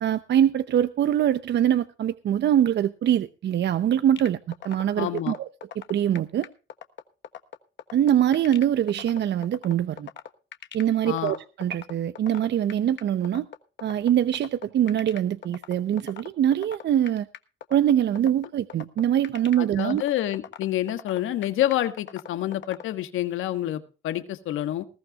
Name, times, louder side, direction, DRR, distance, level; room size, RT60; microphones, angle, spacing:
voice 1, 0.0-5.5 5.9-6.5 7.9-10.1 10.7-13.5 13.8-17.3 17.7-20.0, right 10 dB, 60° right, 0.7 m, -23 dB
sound 1, 4.2-22.8, left 9 dB, 65° left, 1.4 m, -40 dB
voice 2, 5.0-5.3 11.0-11.4 19.6-24.9, left 13 dB, 85° left, 1.5 m, -28 dB
20.0 x 15.0 x 2.4 m
cardioid pair, 90°, 20 cm